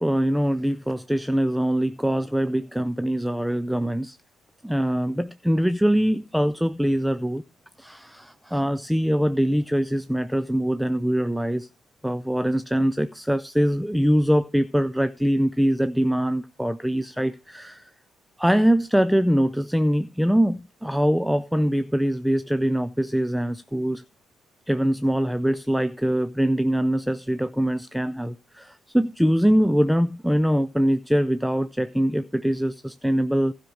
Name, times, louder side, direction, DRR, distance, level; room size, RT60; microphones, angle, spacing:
voice 1, 0.0-4.2 4.6-7.4 7.8-11.7 12.0-17.8 18.4-24.0 24.7-33.5, equal, ahead, 0.5 m, -23 dB
15.5 x 5.8 x 4.8 m
figure-of-eight pair, 45°, 0 cm